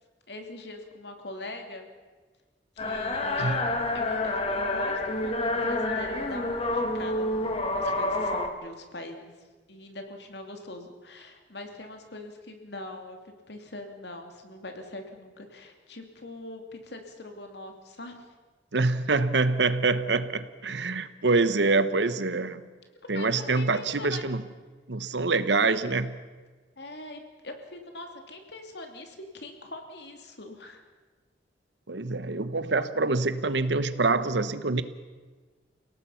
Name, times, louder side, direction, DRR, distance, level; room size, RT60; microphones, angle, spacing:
voice 1, 0.3-1.9 2.8-3.6 3.9-9.3 9.7-13.2 13.5-18.2 23.0-24.2 26.8-30.8, left 2 dB, 65° left, 4 dB, 2.7 m, -42 dB
sound 1, 2.8-8.5, left 2 dB, 35° left, 1.9 m, -28 dB
voice 2, 18.7-22.6 23.1-24.4 24.9-26.1 31.9-34.8, right 3 dB, 75° right, 13 dB, 1.1 m, -25 dB
29.5 x 17.5 x 5.8 m, 1.4 s
head